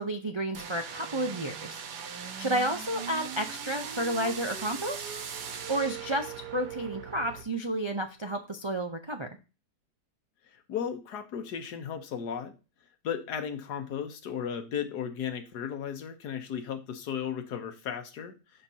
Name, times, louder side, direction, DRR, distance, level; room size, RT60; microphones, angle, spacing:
voice 1, 0.0-1.8 2.4-5.1 5.7-9.3, right 1 dB, 45° right, 4 dB, 0.3 m, -31 dB
sound 1, 0.5-7.4, right 7 dB, 85° right, 1.6 m, -39 dB
voice 2, 10.7-12.5 13.0-18.3, left 8 dB, 80° left, 8 dB, 1.6 m, -35 dB
12.0 x 5.2 x 2.8 m, 0.31 s
omnidirectional pair, 1.7 m